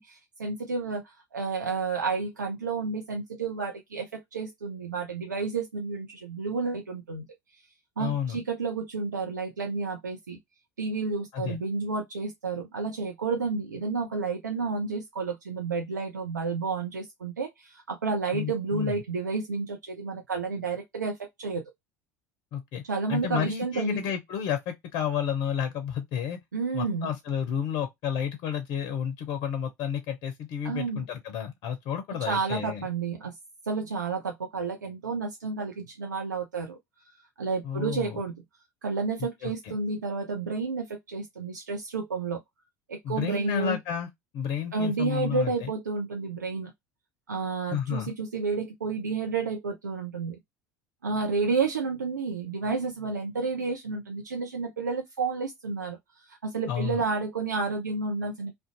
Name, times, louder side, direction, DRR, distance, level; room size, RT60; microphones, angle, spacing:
voice 1, 0.0-7.3 8.0-10.4 10.8-21.6 22.9-24.0 26.5-27.1 30.6-31.1 32.2-33.3 33.7-36.8 37.4-38.3 38.8-42.4 42.9-43.8 44.7-46.7 47.3-50.4 51.0-56.0 56.3-58.5, right 4 dB, 85° right, 0.4 m, -31 dB
voice 2, 8.0-8.4 11.3-11.6 18.3-19.0 22.5-22.8 23.1-26.4 26.7-32.9 37.6-38.2 39.4-39.7 43.0-44.1 44.3-45.7 47.7-48.1 56.7-57.0, left 8 dB, 50° left, 0.5 m, -31 dB
2.4 x 2.2 x 2.6 m
figure-of-eight pair, 70°, 9 cm